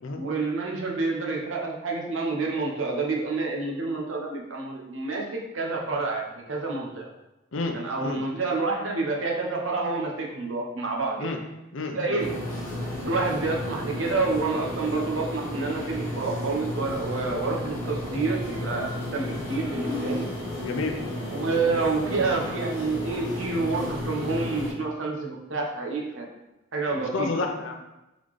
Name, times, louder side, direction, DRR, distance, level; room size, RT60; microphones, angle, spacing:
voice 1, 0.2-7.1 7.7-11.3 11.9-12.3 13.0-20.3 21.3-26.3 26.7-27.3, right 3 dB, 70° right, -1 dB, 0.9 m, -28 dB
voice 2, 7.5-8.2 11.2-11.4 11.7-12.2 20.6-21.0 26.9-27.8, left 3 dB, 65° left, 4 dB, 0.6 m, -30 dB
sound 1, 12.2-24.7, left 1 dB, 10° left, 1.4 m, -33 dB
3.9 x 3.8 x 3.1 m, 0.97 s
head